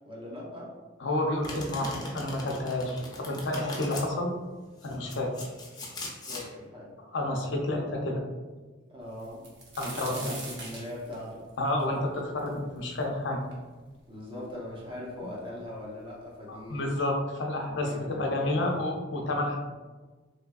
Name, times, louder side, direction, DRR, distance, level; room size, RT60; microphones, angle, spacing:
voice 1, 0.0-0.7 6.0-6.9 8.9-9.5 9.8-11.5 13.9-16.9 17.8-18.8, left 1 dB, 25° right, -4 dB, 0.8 m, -41 dB
voice 2, 1.0-4.3 4.8-5.3 7.1-8.2 9.8-10.4 11.6-13.4 15.2-15.3 16.5-19.6, left 1 dB, 70° left, 1 dB, 0.5 m, -30 dB
Domestic sounds home sounds, 1.4-4.1 4.8-6.5, left 2 dB, 20° left, 0.6 m, -39 dB
sound 1, 9.2-13.0 13.5-13.6 14.4-14.5 14.7-15.4 16.3-16.4 16.8-17.0, right 2 dB, 65° right, 0.9 m, -42 dB
3.3 x 3.1 x 2.3 m, 1.3 s
head